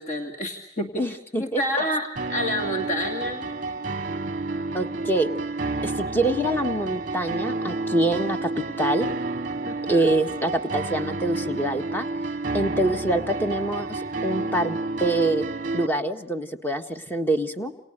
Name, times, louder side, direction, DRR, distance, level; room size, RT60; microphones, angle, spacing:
voice 1, 0.0-3.5 5.8-5.9 9.7-10.1, equal, 40° left, 4 dB, 2.4 m, -29 dB
voice 2, 1.0-1.6 4.7-5.3 5.8-8.5 8.8-9.1 9.9-12.1 12.5-15.5 15.7-17.9, right 1 dB, 10° left, 6 dB, 1.6 m, -25 dB
sound 1, 2.2-15.9, right 3 dB, 45° right, 1.0 m, -30 dB
29.0 x 28.5 x 6.8 m, 0.80 s
head